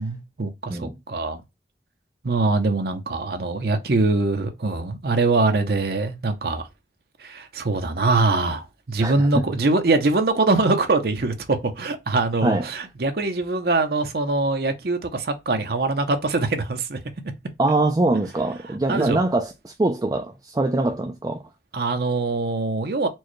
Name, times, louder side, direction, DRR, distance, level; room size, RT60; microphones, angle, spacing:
voice 1, 0.0-1.4 2.2-6.7 7.2-17.0 18.9-19.2 21.7-23.1, right 3 dB, 60° right, 0.7 m, -23 dB
voice 2, 9.0-9.4 12.4-12.7 17.6-21.4, right 2 dB, 20° right, 0.3 m, -23 dB
4.4 x 2.2 x 3.0 m
head